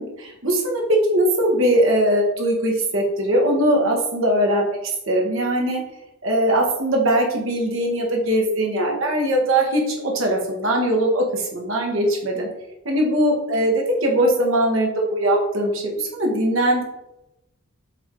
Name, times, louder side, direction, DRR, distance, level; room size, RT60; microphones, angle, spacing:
voice 1, 0.0-5.8 6.2-12.5 12.8-16.8, right 1 dB, 60° right, -1 dB, 1.4 m, -20 dB
7.2 x 3.5 x 3.8 m, 0.88 s
head